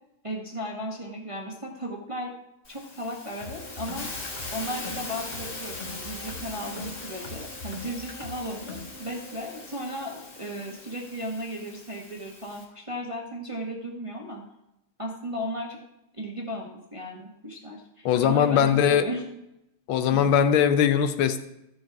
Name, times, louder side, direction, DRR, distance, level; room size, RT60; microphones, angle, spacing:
voice 1, 0.2-2.3 2.7-4.1 4.5-14.4 15.0-15.8 16.1-19.2 20.1-20.3, equal, 20° right, -1 dB, 0.8 m, -35 dB
Hiss, 2.6-12.6, left 2 dB, 50° left, 3.0 m, -41 dB
sound 1, 3.4-11.4, left 3 dB, 25° left, 1.2 m, -43 dB
voice 2, 18.0-19.1 19.9-21.4, left 8 dB, 75° left, 10 dB, 1.4 m, -21 dB
14.0 x 4.8 x 5.8 m, 0.89 s
omnidirectional pair, 2.4 m